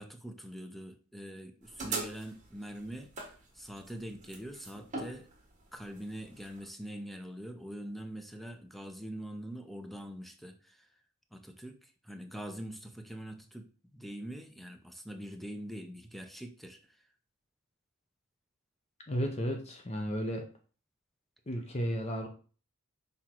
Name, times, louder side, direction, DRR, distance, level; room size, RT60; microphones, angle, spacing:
voice 1, 0.0-3.1 3.5-5.3 5.7-10.9 11.3-17.0, equal, ahead, 6 dB, 0.6 m, -44 dB
sound 1, 1.6-6.6, right 3 dB, 35° right, 1.6 m, -42 dB
voice 2, 19.1-20.5 21.5-22.3, equal, 30° left, 3 dB, 0.8 m, -33 dB
5.9 x 3.6 x 4.5 m, 0.39 s
head